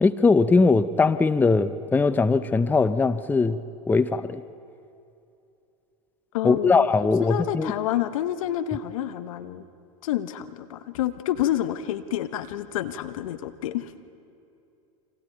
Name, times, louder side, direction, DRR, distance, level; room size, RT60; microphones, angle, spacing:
voice 1, 0.0-3.6 3.9-4.4 6.4-7.7, left 4 dB, 10° left, 14 dB, 0.6 m, -20 dB
voice 2, 6.3-6.9 7.2-9.6 10.0-13.9, left 12 dB, 70° left, 11 dB, 1.1 m, -28 dB
28.5 x 26.0 x 4.6 m, 2.7 s
hypercardioid pair, 95°, 18 cm